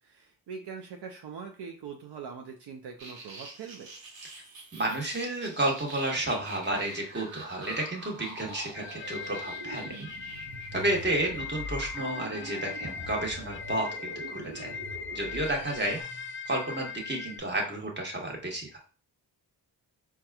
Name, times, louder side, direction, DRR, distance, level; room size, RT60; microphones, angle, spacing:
voice 1, 0.0-3.9 11.3-11.5, right 6 dB, 65° right, 3 dB, 0.6 m, -42 dB
sound 1, 3.0-16.0, right 1 dB, 85° right, 1.0 m, -44 dB
voice 2, 4.8-10.1 10.7-14.8 15.1-16.0 16.5-18.8, right 1 dB, 25° right, 0 dB, 1.3 m, -31 dB
sound 2, 8.7-17.4, left 5 dB, 30° left, 0.5 m, -40 dB
4.0 x 2.3 x 2.3 m, 0.39 s
supercardioid pair, 50°, 43 cm